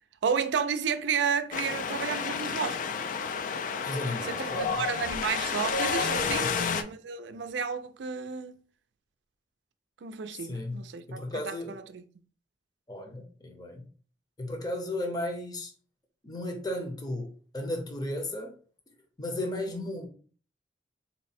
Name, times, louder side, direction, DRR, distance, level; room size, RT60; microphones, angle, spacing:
voice 1, 0.2-2.8 4.2-8.5 10.0-12.0 19.6-19.7, right 6 dB, 85° right, 0.4 m, -32 dB
Wind, 1.5-6.8, left 5 dB, 45° left, 0.3 m, -30 dB
voice 2, 3.8-4.8 6.3-6.5 10.3-10.8 11.1-11.8 12.9-13.9 14.4-15.7 16.2-17.3 17.5-18.5 19.2-20.1, left 1 dB, 20° left, 0.7 m, -34 dB
4.0 x 2.1 x 4.1 m
head